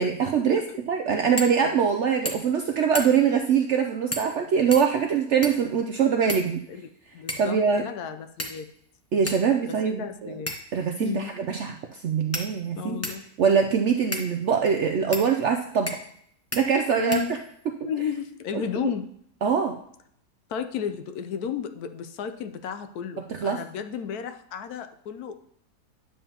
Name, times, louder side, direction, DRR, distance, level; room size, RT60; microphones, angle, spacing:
voice 1, 0.0-6.6 7.4-7.8 9.1-10.3 10.7-13.0 13.4-16.0 16.5-17.2 17.8-17.9 18.5-18.9 19.4-19.8 23.3-23.6, right 6 dB, 70° right, 5 dB, 0.7 m, -23 dB
sound 1, 1.4-1.6 1.9-2.0 2.2-2.6 2.9-3.3 4.1-4.4 4.7-5.7 6.3-6.9 7.3-7.6 8.4-8.8 9.3-9.4 10.5-10.8 11.6-11.7 12.3-13.3 14.1-14.3 15.1-15.3 15.9-16.2 16.5-16.6 17.1-17.7, left 1 dB, 20° left, 0.4 m, -34 dB
voice 2, 7.1-8.7 9.6-10.5 11.0-11.3 12.8-13.2 16.9-17.3 17.8-19.1 20.5-25.4, left 7 dB, 75° left, 9 dB, 1.1 m, -33 dB
10.0 x 7.1 x 2.8 m, 0.67 s
omnidirectional pair, 1.7 m